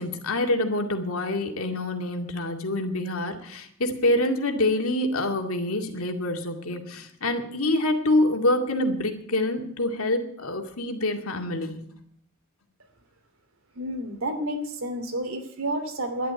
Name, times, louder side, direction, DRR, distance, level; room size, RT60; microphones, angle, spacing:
voice 1, 0.0-11.8, left 1 dB, 90° left, 4 dB, 2.1 m, -26 dB
voice 2, 13.7-16.3, right 1 dB, 85° right, 5 dB, 2.9 m, -30 dB
11.0 x 10.5 x 9.2 m, 0.67 s
head